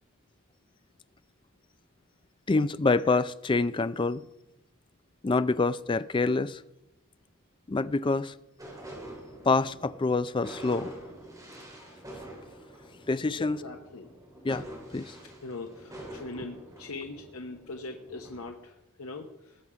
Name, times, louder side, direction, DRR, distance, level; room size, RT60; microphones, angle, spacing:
voice 1, 2.5-4.2 5.2-6.6 7.7-8.3 9.4-10.9 13.1-13.6 14.4-14.6 14.9-15.1, left 3 dB, 20° left, 0.4 m, -26 dB
sound 1, 8.6-18.4, right 1 dB, 15° right, 3.5 m, -46 dB
voice 2, 13.4-14.1 15.4-19.6, left 3 dB, 80° left, 1.0 m, -41 dB
20.0 x 7.2 x 4.9 m
head